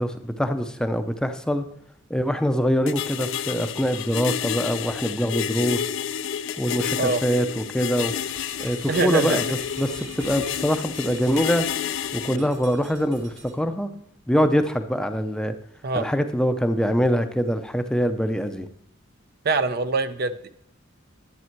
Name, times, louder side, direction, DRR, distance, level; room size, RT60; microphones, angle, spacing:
voice 1, 0.0-1.7 2.1-5.9 6.6-8.1 8.6-9.4 9.8-11.7 12.1-13.9 14.3-15.5 15.9-18.7, equal, 5° left, 8 dB, 0.6 m, -24 dB
sound 1, 2.9-12.4, left 9 dB, 70° left, 0.4 m, -30 dB
sound 2, 8.0-13.5, right 3 dB, 70° right, 2.5 m, -44 dB
voice 2, 8.9-9.4 12.3-12.5 15.8-16.1 19.4-20.5, right 3 dB, 50° right, 11 dB, 0.6 m, -24 dB
11.5 x 8.5 x 4.6 m, 0.73 s
head